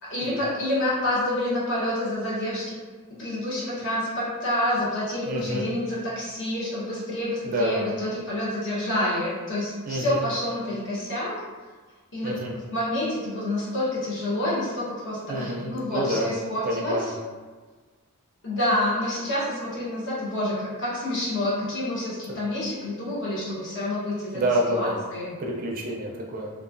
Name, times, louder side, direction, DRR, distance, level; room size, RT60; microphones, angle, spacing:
voice 1, 0.0-2.7 3.2-11.4 12.1-12.4 12.7-17.1 18.4-24.4 24.7-25.4, left 1 dB, 55° left, -7 dB, 1.0 m, -28 dB
voice 2, 5.3-5.6 7.4-7.9 9.9-10.2 12.2-12.5 15.3-16.3 16.6-17.1 24.3-25.0 25.4-26.5, right 1 dB, 40° right, -1 dB, 0.4 m, -28 dB
2.9 x 2.3 x 2.5 m, 1.4 s
head